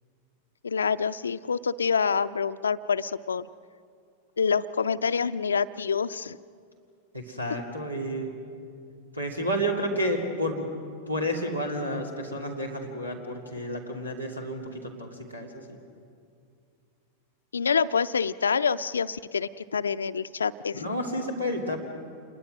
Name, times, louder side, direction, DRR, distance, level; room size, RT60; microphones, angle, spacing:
voice 1, 0.6-3.5 4.4-6.4 17.5-20.9, left 6 dB, 70° left, 15 dB, 0.5 m, -27 dB
voice 2, 7.1-8.3 9.1-10.7 11.1-15.8 20.7-21.8, equal, 90° right, 2 dB, 2.7 m, -31 dB
27.5 x 21.5 x 6.2 m, 2.4 s
figure-of-eight pair, 90°, 0 cm